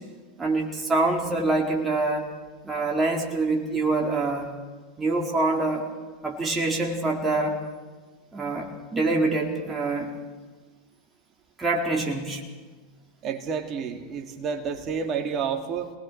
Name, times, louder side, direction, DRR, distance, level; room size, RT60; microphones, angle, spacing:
voice 1, 0.4-2.3 2.6-4.5 5.0-5.9 6.2-7.6 8.3-10.1 11.6-12.4, right 2 dB, 15° right, 0 dB, 4.4 m, -25 dB
voice 2, 13.2-15.9, right 6 dB, 35° right, 4 dB, 2.5 m, -30 dB
26.5 x 20.0 x 6.2 m, 1.4 s
hypercardioid pair, 95°, 0 cm